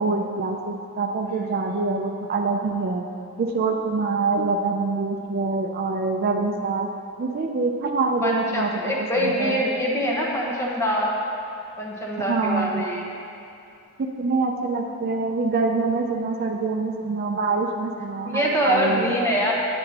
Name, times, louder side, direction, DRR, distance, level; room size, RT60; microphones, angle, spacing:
voice 1, 0.0-3.1 3.4-6.9 7.2-9.7 12.3-12.9 14.0-19.1, right 3 dB, 45° right, 3 dB, 0.4 m, -25 dB
voice 2, 8.2-11.2 11.8-13.1 18.2-19.5, equal, 10° left, -3 dB, 0.9 m, -24 dB
9.1 x 7.7 x 2.9 m, 2.6 s
head